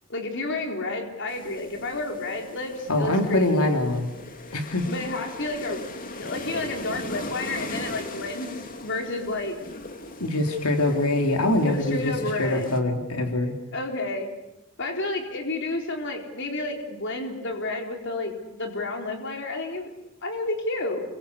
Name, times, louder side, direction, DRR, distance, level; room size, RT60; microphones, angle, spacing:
voice 1, 0.1-3.7 4.9-5.8 6.2-8.5 8.8-9.5 11.6-12.7 13.7-14.3 14.8-19.9 20.2-21.0, left 2 dB, 55° left, 4 dB, 4.3 m, -30 dB
sound 1, 1.3-12.8, left 2 dB, 40° left, 2.6 m, -39 dB
voice 2, 2.9-4.1 4.5-4.8 10.2-13.5, left 1 dB, 85° left, 4 dB, 3.3 m, -24 dB
28.5 x 24.0 x 8.3 m, 0.90 s
head